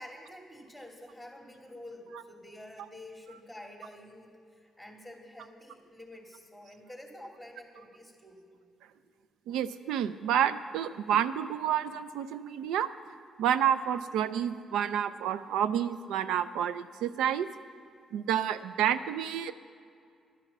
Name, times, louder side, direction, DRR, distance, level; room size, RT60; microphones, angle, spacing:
voice 1, 0.0-8.4, left 1 dB, 5° right, 1 dB, 2.7 m, -48 dB
voice 2, 9.5-12.9 13.4-17.5 18.1-19.5, right 9 dB, 90° right, 13 dB, 0.4 m, -29 dB
12.0 x 9.9 x 7.2 m, 2.4 s
cardioid pair, 90°, 0 cm